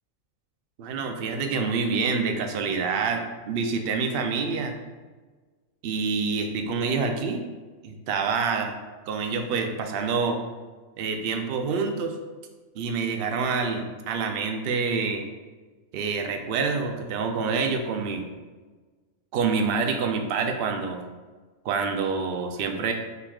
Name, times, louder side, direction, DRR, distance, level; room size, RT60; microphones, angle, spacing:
voice 1, 0.8-4.7 5.8-7.4 7.8-8.7 9.1-10.4 11.0-12.2 12.7-15.2 15.9-18.3 19.3-21.0 21.6-22.9, right 5 dB, 60° right, 4 dB, 0.6 m, -27 dB
5.8 x 3.5 x 2.3 m, 1.4 s
omnidirectional pair, 1.4 m